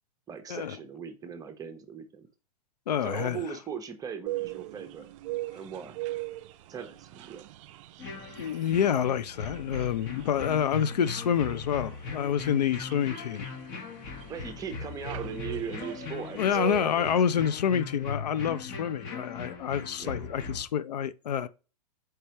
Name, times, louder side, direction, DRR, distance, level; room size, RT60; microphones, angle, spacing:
voice 1, 0.3-2.3 3.0-5.1 5.5-6.0 6.7-7.5 14.3-17.1 17.3-17.5 20.0-20.2, right 7 dB, 20° right, 0.7 m, -39 dB
voice 2, 2.9-3.4 8.4-13.5 16.4-21.5, left 8 dB, 90° left, 0.4 m, -28 dB
sound 1, 4.3-17.1, right 18 dB, 55° right, 0.4 m, -41 dB
sound 2, 8.0-20.7, left 4 dB, 40° left, 1.0 m, -39 dB
4.5 x 3.2 x 2.9 m
hypercardioid pair, 120°, 20 cm